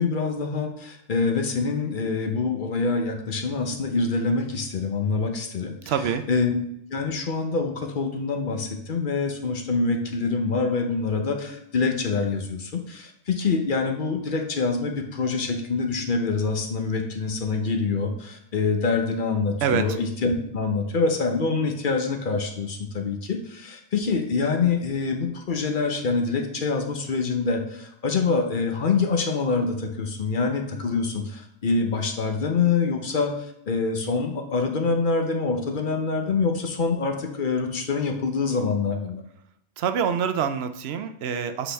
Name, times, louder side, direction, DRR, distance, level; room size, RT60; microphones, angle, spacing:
voice 1, 0.0-5.9 6.3-6.5 6.9-33.3 33.7-39.2, left 4 dB, 50° left, 4 dB, 0.8 m, -25 dB
voice 2, 5.9-6.2 19.6-19.9 39.8-41.7, right 7 dB, 70° right, 9 dB, 0.8 m, -25 dB
7.8 x 4.0 x 3.3 m, 0.76 s
omnidirectional pair, 1.2 m